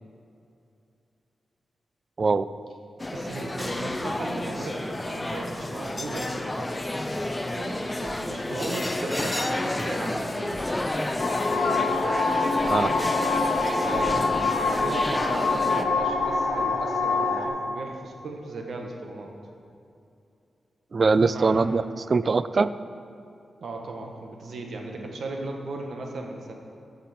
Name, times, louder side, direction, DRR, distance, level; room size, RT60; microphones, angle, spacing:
voice 1, 2.2-2.5 12.7-12.9 20.9-21.8 22.1-22.7, right 4 dB, 45° right, 14 dB, 0.3 m, -21 dB
sound 1, 3.0-15.8, left 1 dB, 15° left, 0.6 m, -30 dB
voice 2, 3.1-6.9 7.5-10.6 11.4-13.1 13.8-14.4 14.7-19.3 21.2-21.7 23.6-26.5, right 2 dB, 70° right, 2 dB, 1.3 m, -37 dB
sound 2, 11.2-17.5, left 4 dB, 55° left, 1.2 m, -25 dB
15.0 x 5.8 x 4.3 m, 2.6 s
wide cardioid pair, 95°, 0 cm